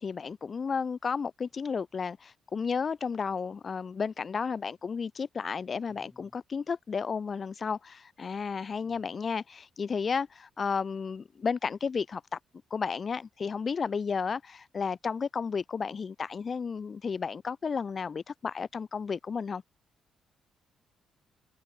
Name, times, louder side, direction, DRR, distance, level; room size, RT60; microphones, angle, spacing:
voice 1, 0.0-12.4 12.7-19.6, left 5 dB, 40° left, 0.9 m, -33 dB
voice 2, 5.9-6.4 8.7-9.1, left 1 dB, 10° left, 7.4 m, -60 dB
cardioid pair, 90°, 0 cm